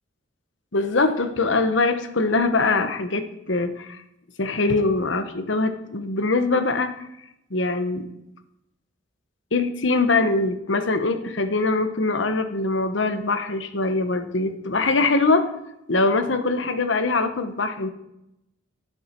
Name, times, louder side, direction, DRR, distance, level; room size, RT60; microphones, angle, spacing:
voice 1, 0.7-4.0 4.4-7.1 7.5-8.1 9.5-15.4 15.9-17.9, left 3 dB, 70° left, 8 dB, 1.2 m, -22 dB
18.5 x 7.2 x 4.6 m, 0.84 s
head